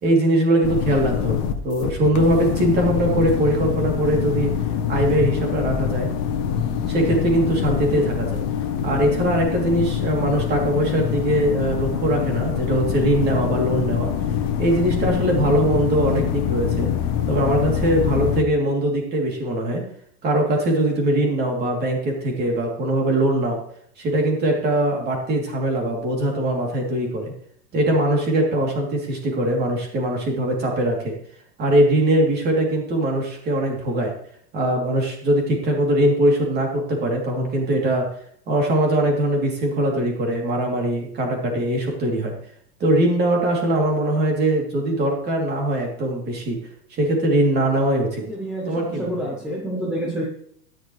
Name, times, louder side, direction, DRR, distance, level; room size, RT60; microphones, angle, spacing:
voice 1, 0.0-4.5 4.9-6.1 6.9-8.4 8.8-14.1 14.6-16.9 17.3-19.8 20.2-23.6 24.0-27.3 27.7-31.1 31.6-34.1 34.5-38.1 38.5-42.3 42.8-46.6 46.9-48.2 48.7-49.3, right 1 dB, 20° right, 0 dB, 2.9 m, -21 dB
sound 1, 0.6-18.4, left 8 dB, 30° left, 0.9 m, -25 dB
voice 2, 48.2-50.3, right 1 dB, ahead, -4 dB, 0.5 m, -28 dB
13.0 x 10.5 x 3.2 m, 0.64 s
supercardioid pair, 155°, 48 cm